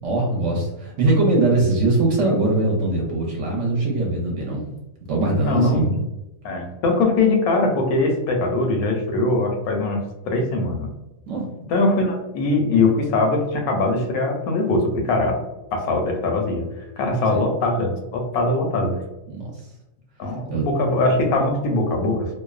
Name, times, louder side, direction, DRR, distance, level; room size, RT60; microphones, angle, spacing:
voice 1, 0.0-4.7 5.1-5.9 11.3-11.5 17.3-17.4 19.3-19.6 20.5-20.7, right 2 dB, 65° right, -1 dB, 0.9 m, -21 dB
voice 2, 5.5-6.0 6.4-10.9 11.7-15.4 15.7-16.7 17.0-19.0 20.2-22.3, left 2 dB, 80° left, 3 dB, 1.1 m, -21 dB
2.6 x 2.1 x 2.3 m, 0.97 s
omnidirectional pair, 1.5 m